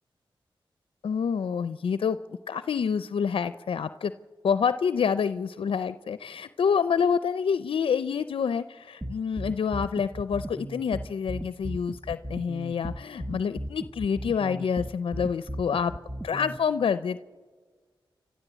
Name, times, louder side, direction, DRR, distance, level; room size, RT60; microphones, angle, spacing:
voice 1, 1.0-2.2 2.5-4.1 4.4-15.9 16.2-17.2, left 6 dB, 80° left, 13 dB, 0.5 m, -27 dB
sound 1, 9.0-16.6, right 1 dB, 10° right, 0.8 m, -36 dB
29.0 x 12.0 x 8.1 m, 1.5 s
cardioid pair, 55°, 9 cm